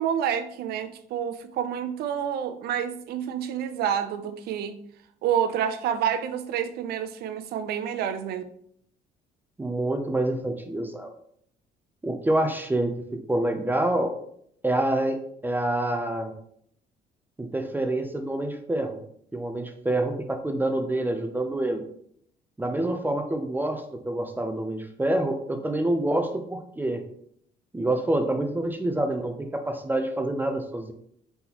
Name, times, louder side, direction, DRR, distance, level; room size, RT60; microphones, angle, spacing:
voice 1, 0.0-4.8 5.2-8.4, right 9 dB, 70° right, 0.5 m, -28 dB
voice 2, 9.6-11.1 12.0-12.9 13.3-14.1 14.6-15.2 15.4-16.3 17.4-19.0 19.3-21.8 22.6-27.0 27.7-30.9, right 1 dB, 10° right, 0.5 m, -27 dB
4.0 x 3.8 x 2.9 m
cardioid pair, 110°, 17 cm